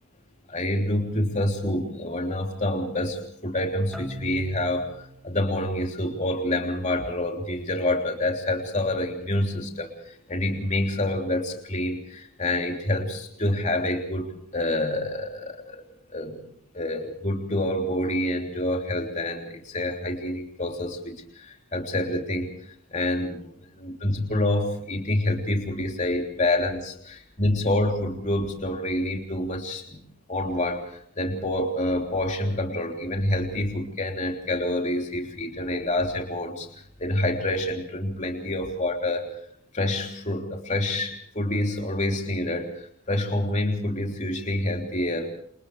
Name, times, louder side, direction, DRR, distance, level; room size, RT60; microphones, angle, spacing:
voice 1, 0.5-15.8 16.1-16.4 16.7-22.5 22.9-23.4 23.8-30.0 30.3-39.3 39.7-45.3, left 1 dB, 35° left, 2 dB, 3.4 m, -27 dB
sound 1, 3.9-5.6, equal, ahead, 2.6 m, -41 dB
28.5 x 28.5 x 3.4 m, 0.65 s
head